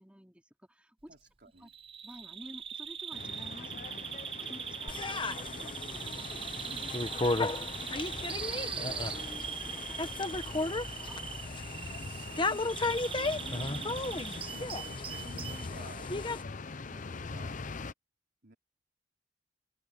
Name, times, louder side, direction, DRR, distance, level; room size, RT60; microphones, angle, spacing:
voice 1, 0.0-1.1 1.6-1.7 2.0-11.2, equal, 5° right, 4.4 m, -53 dB
voice 2, 1.1-1.7 11.9-14.0 14.5-16.2 16.9-17.6 18.4-18.6, right 2 dB, 55° right, 4.2 m, -53 dB
Bird vocalization bird call bird song, 1.7-15.7, right 8 dB, 30° right, 0.7 m, -41 dB
sound 1, 3.1-17.9, left 4 dB, 45° left, 0.7 m, -43 dB
sound 2, 4.9-16.4, left 2 dB, 25° left, 1.2 m, -35 dB
head